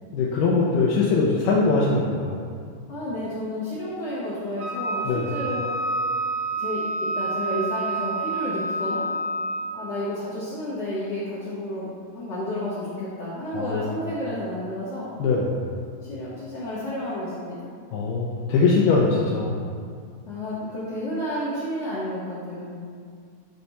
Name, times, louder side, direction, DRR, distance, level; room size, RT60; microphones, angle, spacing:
voice 1, 0.1-2.4 5.0-5.3 13.5-13.9 15.2-15.7 17.9-19.6, left 4 dB, 80° left, -4 dB, 1.9 m, -22 dB
voice 2, 2.9-5.7 6.6-9.0 9.7-15.1 16.0-17.6 20.2-22.7, left 1 dB, 65° left, -11 dB, 1.7 m, -31 dB
Wind instrument woodwind instrument, 4.6-9.8, right 2 dB, 80° right, 2.1 m, -28 dB
9.0 x 3.3 x 4.1 m, 2.2 s
omnidirectional pair, 4.4 m